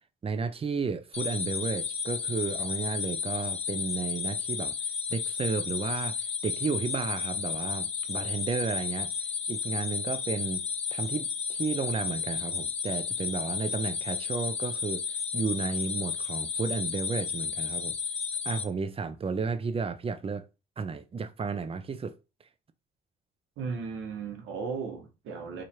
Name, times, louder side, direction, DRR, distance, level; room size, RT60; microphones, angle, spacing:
voice 1, 0.2-4.8 5.1-10.6 10.9-18.0 18.4-20.5 20.8-22.1, right 5 dB, 30° right, 0.5 m, -33 dB
sound 1, 1.1-18.6, left 6 dB, 30° left, 0.5 m, -33 dB
voice 2, 23.6-25.6, right 5 dB, 85° right, 1.1 m, -36 dB
3.1 x 2.4 x 4.2 m
cardioid pair, 90°, 20 cm